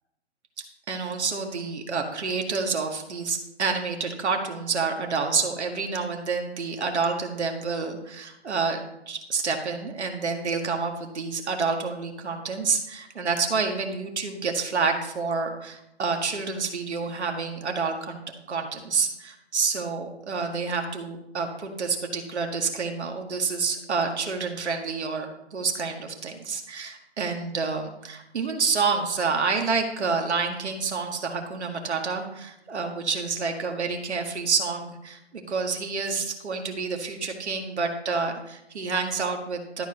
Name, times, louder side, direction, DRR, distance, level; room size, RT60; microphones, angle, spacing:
voice 1, 0.9-18.2 18.5-39.8, right 4 dB, 75° right, 3 dB, 1.9 m, -28 dB
12.0 x 4.9 x 5.9 m, 0.85 s
hypercardioid pair, 160°, 34 cm